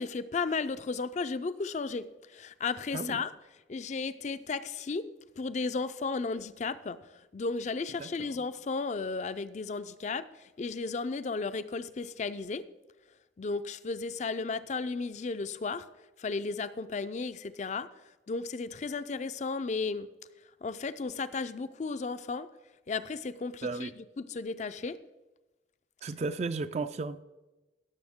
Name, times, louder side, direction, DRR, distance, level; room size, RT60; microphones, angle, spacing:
voice 1, 0.0-3.3 3.7-5.1 5.4-7.0 7.3-10.3 10.6-12.7 13.4-15.9 16.2-17.9 18.3-20.1 20.6-22.5 22.9-25.0, left 4 dB, 40° left, 14 dB, 0.4 m, -34 dB
voice 2, 8.0-8.3 23.6-23.9 26.0-27.2, right 4 dB, 35° right, 11 dB, 0.3 m, -34 dB
16.5 x 6.9 x 3.6 m, 1.1 s
head